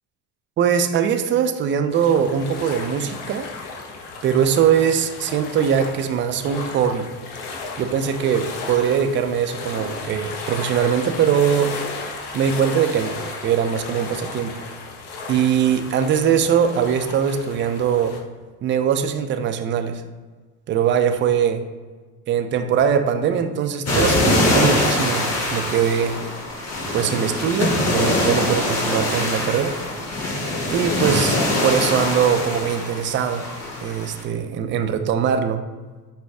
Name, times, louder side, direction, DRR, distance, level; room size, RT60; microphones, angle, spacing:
voice 1, 0.6-3.5 4.2-7.1 7.8-11.7 12.3-14.5 15.3-18.2 18.6-20.0 20.7-21.6 22.3-26.2 26.9-29.7 30.7-33.5 33.8-35.6, right 8 dB, 30° right, 8 dB, 0.3 m, -21 dB
sound 1, 1.9-18.2, left 3 dB, 60° left, 0.9 m, -34 dB
sound 2, 23.9-34.2, left 1 dB, 35° left, 1.3 m, -23 dB
5.4 x 2.3 x 3.4 m, 1.4 s
hypercardioid pair, 75°, 46 cm